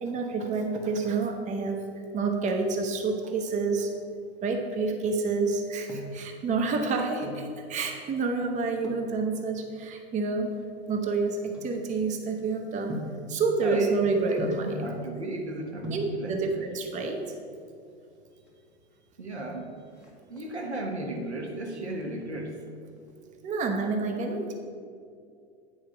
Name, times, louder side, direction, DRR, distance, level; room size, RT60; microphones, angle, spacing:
voice 1, 0.0-1.8 2.1-3.9 4.4-10.5 10.9-13.0 13.3-14.7 15.9-17.3 20.4-20.6 23.4-24.5, right 4 dB, 20° right, 3 dB, 0.9 m, -28 dB
sound 1, 5.7-6.3 7.0-7.5 8.8-9.2 9.9-12.3 12.9-13.3 14.4-14.8 15.5-15.6 15.8-16.2 17.3-17.8 18.1-18.2 18.5-18.6 19.0-19.4 19.7-20.7 21.2-21.6 21.9-23.1 23.4-23.5, left 1 dB, 5° right, 1.6 m, -40 dB
voice 2, 13.6-14.0 14.3-16.7 19.2-19.7 20.3-22.5, right 1 dB, 85° right, 1 dB, 1.3 m, -35 dB
9.2 x 4.8 x 5.8 m, 2.4 s
figure-of-eight pair, 95°, 33 cm